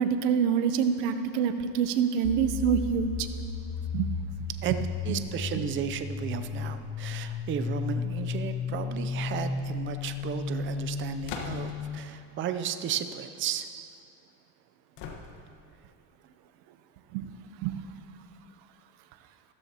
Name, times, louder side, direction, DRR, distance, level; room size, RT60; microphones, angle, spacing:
voice 1, 0.0-3.1 3.9-4.1 5.1-5.2 17.1-17.3 17.6-17.7, right 7 dB, 80° right, 9 dB, 0.9 m, -26 dB
sound 1, 2.2-12.0, left 5 dB, 25° left, 0.7 m, -34 dB
voice 2, 5.0-13.7, right 8 dB, 25° right, 9 dB, 0.5 m, -34 dB
sound 2, 11.2-11.9 15.0-15.7, left 4 dB, 60° left, 1.5 m, -39 dB
14.5 x 13.0 x 2.9 m, 2.4 s
supercardioid pair, 125°, 49 cm